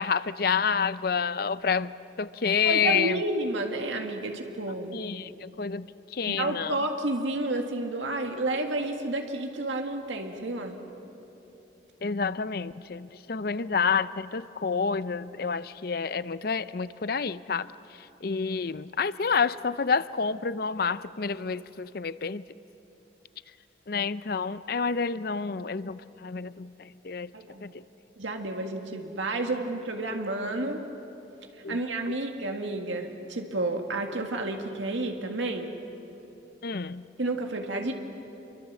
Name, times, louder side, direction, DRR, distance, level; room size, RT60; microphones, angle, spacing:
voice 1, 0.0-3.2 4.9-6.8 12.0-17.7 18.2-22.4 23.9-27.3 27.6-27.7 31.6-31.8 36.6-37.1, left 5 dB, 55° left, 15 dB, 0.5 m, -29 dB
voice 2, 2.6-5.0 6.3-10.8 27.3-27.6 28.2-30.8 31.7-35.7 37.2-37.9, right 2 dB, 90° right, 3 dB, 1.9 m, -30 dB
28.5 x 23.0 x 7.4 m, 3.0 s
head